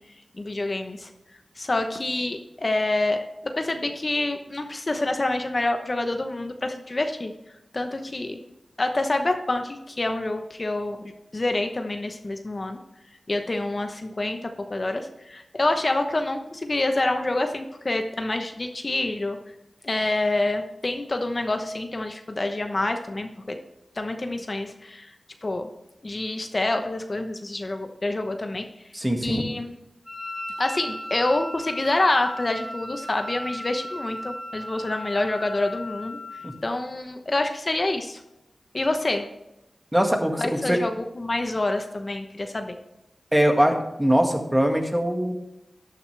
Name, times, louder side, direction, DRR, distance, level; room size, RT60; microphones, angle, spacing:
voice 1, 0.4-1.1 1.6-7.3 7.7-8.4 8.8-12.8 13.3-19.4 19.8-23.6 24.0-25.1 25.4-25.7 26.0-28.7 29.2-29.7 30.6-38.2 38.7-39.3 40.4-42.8, left 2 dB, 40° left, 6 dB, 0.9 m, -27 dB
voice 2, 28.9-29.4 36.4-36.5 39.9-40.8 43.3-45.3, equal, 10° right, 3 dB, 1.9 m, -22 dB
Wind instrument woodwind instrument, 30.0-36.6, left 1 dB, 25° left, 2.9 m, -36 dB
13.0 x 9.6 x 3.4 m, 0.93 s
cardioid pair, 55°, 0 cm